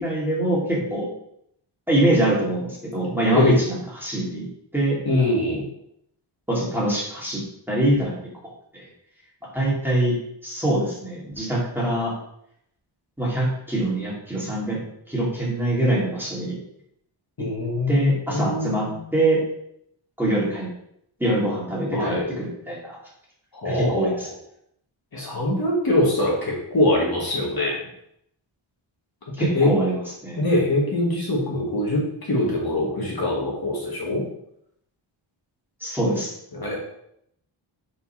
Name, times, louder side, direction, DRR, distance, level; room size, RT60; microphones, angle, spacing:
voice 1, 0.0-1.1 1.9-4.5 4.7-5.0 6.5-7.4 7.7-8.2 8.7-8.9 9.5-10.2 10.4-12.1 13.2-16.5 17.9-19.4 20.2-20.7 21.2-23.0 23.6-24.3 29.4-30.4 35.8-36.3, right 1 dB, 5° right, -6 dB, 2.3 m, -24 dB
voice 2, 5.0-5.7 17.4-19.0 21.9-22.3 23.5-24.3 25.1-27.8 29.4-29.7 30.4-34.2 36.5-36.8, left 1 dB, 45° left, -3 dB, 1.7 m, -23 dB
5.4 x 4.9 x 5.6 m, 0.74 s
wide cardioid pair, 170°, 49 cm